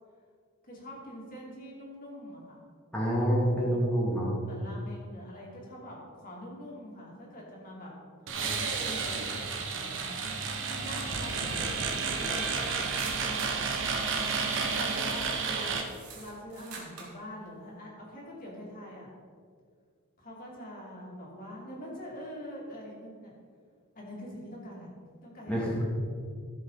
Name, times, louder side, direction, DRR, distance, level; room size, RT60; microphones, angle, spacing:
voice 1, 0.7-2.6 4.4-7.9 8.3-10.2 10.6-11.8 12.2-13.7 14.5-15.8 16.1-19.1 20.2-23.4 23.9-24.9 25.2-25.7, equal, 40° left, -4 dB, 2.9 m, -44 dB
voice 2, 2.9-4.3 25.5-25.8, equal, 5° left, -7 dB, 2.3 m, -27 dB
sound 1, 8.3-15.8, right 5 dB, 60° right, 1.2 m, -31 dB
sound 2, 13.0-13.6 14.6-14.8 15.6-17.2, right 4 dB, 85° right, 2.1 m, -45 dB
14.5 x 7.4 x 4.1 m, 2.1 s
head